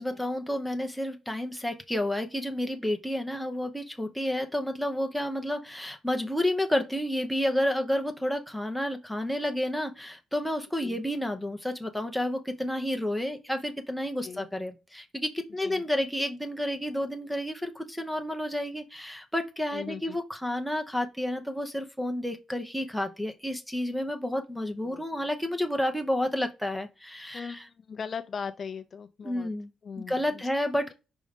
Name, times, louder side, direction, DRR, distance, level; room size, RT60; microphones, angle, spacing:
voice 1, 0.0-27.7 29.2-29.7 30.0-30.9, left 1 dB, ahead, 0.8 m, -30 dB
voice 2, 19.7-20.2 24.9-25.1 27.3-29.5 29.8-30.4, left 6 dB, 35° left, 0.4 m, -39 dB
5.3 x 3.6 x 5.1 m
cardioid pair, 165°, 0 cm